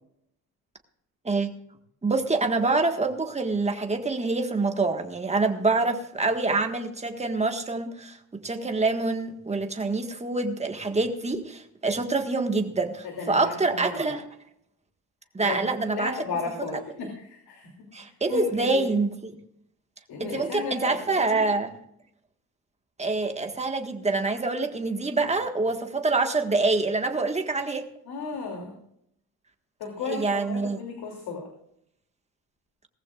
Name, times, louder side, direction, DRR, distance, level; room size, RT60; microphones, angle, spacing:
voice 1, 2.0-14.2 15.3-16.1 17.9-19.4 20.2-21.8 23.0-27.9 30.0-30.8, right 3 dB, 15° right, 4 dB, 1.6 m, -26 dB
voice 2, 13.0-13.8 15.4-15.6 15.8-17.7 18.3-18.8 20.1-21.0 21.3-21.5 28.1-28.8 29.8-31.4, left 4 dB, 90° left, 1 dB, 3.0 m, -34 dB
19.0 x 14.5 x 2.5 m, 0.73 s
cardioid pair, 125°, 37 cm